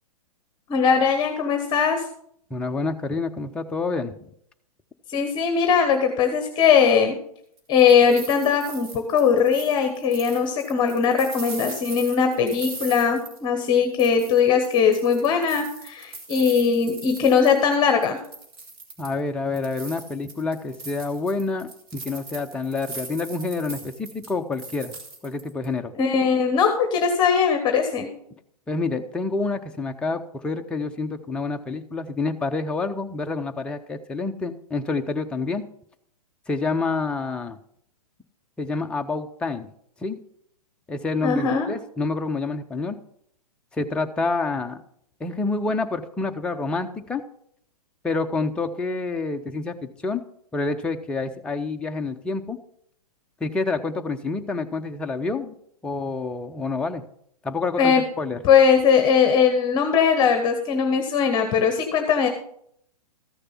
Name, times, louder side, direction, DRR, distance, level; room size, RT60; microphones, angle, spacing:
voice 1, 0.7-2.1 5.1-7.2 7.7-18.2 26.0-28.1 41.2-41.7 57.8-58.0 58.4-62.3, left 6 dB, 25° left, 6 dB, 1.1 m, -20 dB
voice 2, 2.5-4.3 19.0-24.9 25.2-25.9 28.7-35.6 36.5-37.6 38.6-39.7 40.0-40.2 40.9-43.0 43.7-44.8 45.2-47.2 48.0-50.2 50.5-52.6 53.4-55.6 55.8-57.0 57.4-58.4, left 3 dB, 5° left, 4 dB, 0.5 m, -28 dB
sound 1, 7.6-13.7 14.0-17.8 18.0-19.2 19.5-25.7, right 3 dB, 35° right, 2.3 m, -40 dB
13.5 x 6.7 x 5.6 m, 0.69 s
figure-of-eight pair, 120°, 20 cm